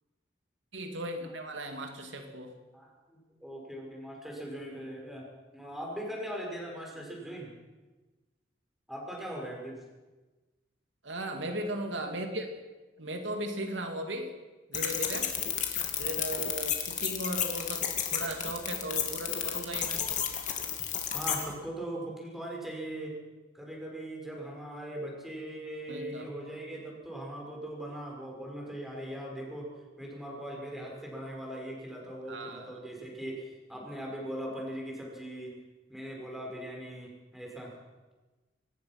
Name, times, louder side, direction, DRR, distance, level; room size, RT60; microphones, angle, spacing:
voice 1, 0.7-2.5 11.0-12.5 13.0-14.3 14.7-15.3 16.0-20.0 25.9-26.3 32.3-32.8, right 1 dB, 85° right, 4 dB, 2.7 m, -37 dB
voice 2, 2.7-7.5 8.9-9.8 15.8-15.9 21.1-23.2 23.5-29.7 30.0-35.6 35.9-37.7, right 1 dB, ahead, -2 dB, 5.6 m, -40 dB
sound 1, 14.7-21.4, left 9 dB, 40° left, 2.7 m, -32 dB
24.5 x 19.0 x 6.1 m, 1.2 s
head